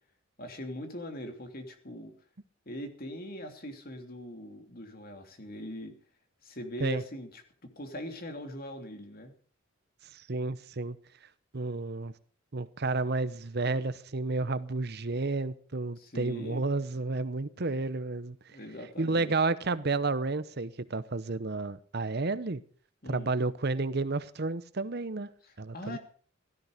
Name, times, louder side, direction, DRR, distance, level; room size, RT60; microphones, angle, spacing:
voice 1, 0.4-2.1 2.7-5.9 6.4-9.3 16.0-16.6 18.5-19.3 23.0-23.3 25.4-26.0, left 1 dB, 45° left, 2.9 m, -41 dB
voice 2, 10.1-11.0 11.5-12.1 12.5-18.4 19.0-22.6 23.1-25.3 25.6-26.0, right 3 dB, 50° right, 0.8 m, -31 dB
16.5 x 13.5 x 5.1 m
head